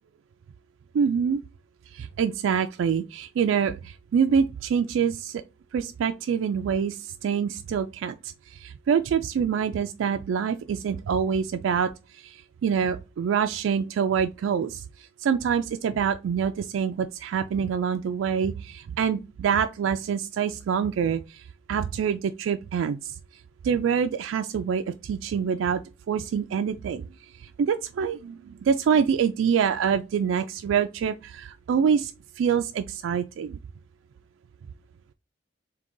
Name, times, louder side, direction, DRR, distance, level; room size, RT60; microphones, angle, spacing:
voice 1, 0.9-1.4 1.9-5.4 5.7-23.1 23.6-25.8 26.1-27.0 27.4-32.1 32.4-33.6, right 7 dB, 85° right, 0.3 m, -26 dB
3.7 x 2.8 x 3.7 m
head